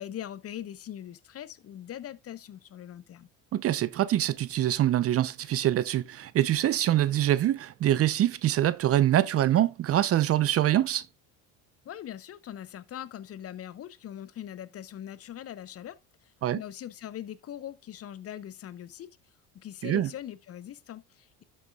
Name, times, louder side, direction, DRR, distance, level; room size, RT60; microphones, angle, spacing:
voice 1, 0.0-3.3 11.8-19.2 19.5-21.4, left 11 dB, 40° left, 0.8 m, -41 dB
voice 2, 3.5-11.1 16.4-16.6 19.8-20.1, right 12 dB, 40° right, 0.6 m, -24 dB
12.0 x 6.5 x 2.3 m
supercardioid pair, 100°, 38 cm